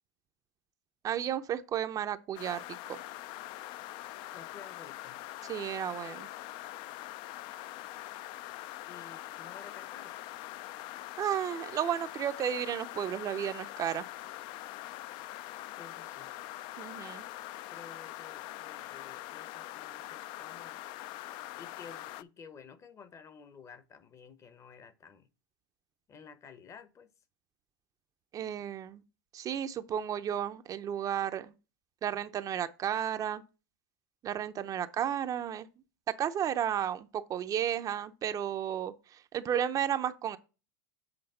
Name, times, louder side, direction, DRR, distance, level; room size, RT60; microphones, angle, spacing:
voice 1, 1.0-3.0 5.4-6.3 11.2-14.1 16.8-17.2 28.3-29.0 29.3-31.5 32.0-33.4 34.2-35.7 36.1-40.4, right 9 dB, 30° right, 0.5 m, -33 dB
sound 1, 2.4-22.2, left 15 dB, 45° left, 0.4 m, -43 dB
voice 2, 4.3-5.2 8.9-10.2 15.8-16.3 17.7-20.8 21.6-25.3 26.1-27.1, left 6 dB, 25° left, 0.8 m, -53 dB
7.9 x 3.4 x 5.4 m
hypercardioid pair, 115°, 11 cm